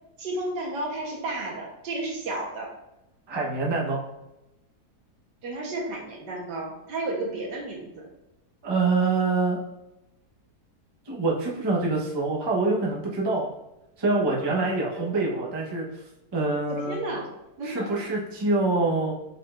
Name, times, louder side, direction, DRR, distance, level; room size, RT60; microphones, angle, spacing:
voice 1, 0.2-2.7 5.4-8.0 14.4-14.6 14.9-15.5 16.7-17.3 17.6-18.0, right 2 dB, 90° right, 0 dB, 1.6 m, -32 dB
voice 2, 3.3-4.1 8.6-9.6 11.1-13.5 14.0-16.0 16.3-17.0 17.6-19.1, right 3 dB, 30° right, -3 dB, 0.5 m, -25 dB
4.8 x 4.2 x 2.4 m, 0.92 s
omnidirectional pair, 1.8 m